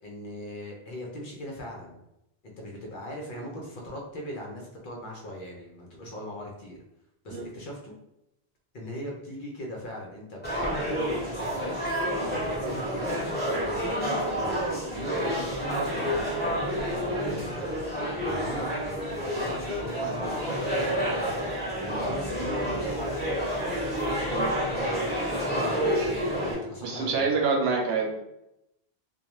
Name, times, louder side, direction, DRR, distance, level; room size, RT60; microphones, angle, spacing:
voice 1, 0.0-2.0 2.4-6.8 7.2-7.9 8.7-11.9 12.3-13.1 13.5-17.7 18.2-23.7 24.2-25.0 25.3-27.2, left 1 dB, 60° left, -1 dB, 0.7 m, -39 dB
sound 1, 10.4-26.5, equal, 10° left, 1.0 m, -29 dB
voice 2, 26.8-28.1, right 4 dB, 80° right, 1 dB, 0.8 m, -26 dB
2.3 x 2.1 x 2.9 m, 0.85 s
omnidirectional pair, 1.0 m